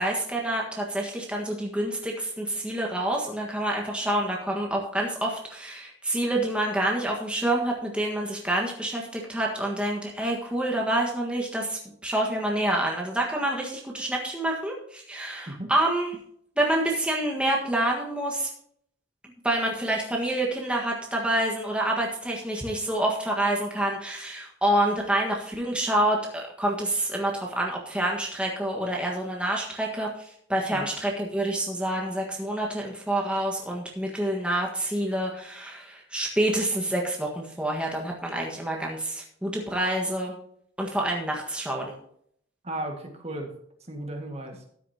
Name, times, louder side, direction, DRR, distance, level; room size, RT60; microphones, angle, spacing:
voice 1, 0.0-16.2 16.6-18.5 19.4-40.3 40.8-41.9, right 1 dB, 5° right, -2 dB, 1.5 m, -27 dB
voice 2, 42.6-43.5 43.9-44.6, right 1 dB, 30° right, 3 dB, 1.8 m, -35 dB
13.0 x 9.8 x 2.9 m, 0.67 s
head